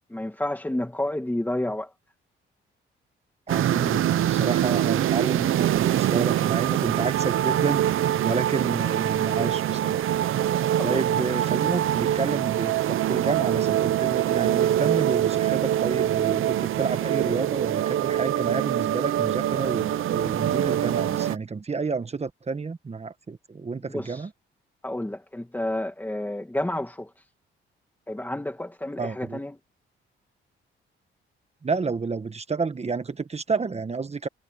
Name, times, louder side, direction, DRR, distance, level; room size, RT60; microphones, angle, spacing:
voice 1, 0.1-1.9 10.8-11.3 23.8-24.3 24.8-27.1 28.1-29.6, left 1 dB, 10° left, 2.4 m, -30 dB
voice 2, 3.5-10.1 10.8-24.3 29.0-29.4 31.6-34.3, right 4 dB, 30° right, 1.5 m, -30 dB
sound 1, 3.5-21.4, right 12 dB, 75° right, 0.9 m, -24 dB
cardioid pair, 85°, 21 cm